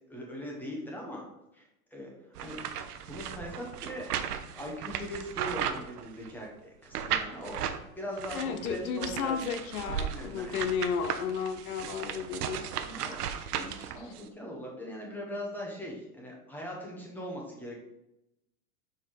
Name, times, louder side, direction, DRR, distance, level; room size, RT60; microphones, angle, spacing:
voice 1, 0.1-1.2 1.5-2.1 2.4-2.6 2.9-4.1 4.6-9.4 9.8-10.6 12.8-13.2 13.5-17.7, equal, 5° left, -2 dB, 0.9 m, -40 dB
sound 1, 2.3-6.4 6.9-7.8 8.2-14.2, right 9 dB, 80° right, 0.8 m, -36 dB
voice 2, 8.3-12.7 14.0-14.1, left 6 dB, 70° left, 10 dB, 0.9 m, -33 dB
5.5 x 4.6 x 4.8 m, 0.87 s
supercardioid pair, 155°, 46 cm